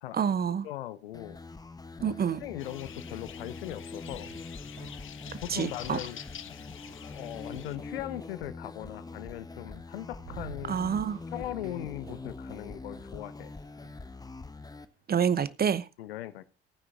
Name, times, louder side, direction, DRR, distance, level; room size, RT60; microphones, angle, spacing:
voice 1, 0.1-0.7 2.0-2.4 5.5-6.0 10.7-11.2 15.1-15.9, right 7 dB, 30° right, 0.9 m, -27 dB
voice 2, 0.6-1.4 2.0-4.3 5.4-6.2 7.0-10.8 11.3-13.5 16.0-16.5, left 13 dB, 70° left, 0.9 m, -39 dB
sound 1, 1.1-14.9, left 3 dB, 10° left, 1.0 m, -44 dB
sound 2, 2.6-7.8, left 10 dB, 40° left, 1.0 m, -47 dB
sound 3, 4.0-8.1 9.4-9.5 9.9-15.5, right 5 dB, 75° right, 7.9 m, -52 dB
14.5 x 9.8 x 3.6 m
figure-of-eight pair, 50°, 30 cm